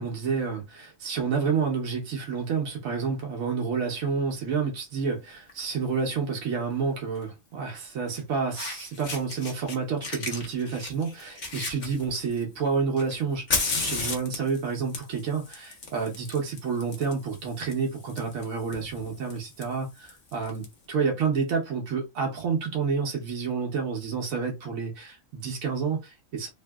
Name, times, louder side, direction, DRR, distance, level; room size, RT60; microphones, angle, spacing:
voice 1, 0.0-26.5, right 5 dB, 85° right, 1.3 m, -29 dB
Fire, 5.5-5.7 7.1-7.2 8.2-8.3 8.5-9.7 10.0-12.4 13.0-20.6, left 3 dB, 40° left, 0.8 m, -34 dB
3.2 x 2.7 x 2.3 m
omnidirectional pair, 1.4 m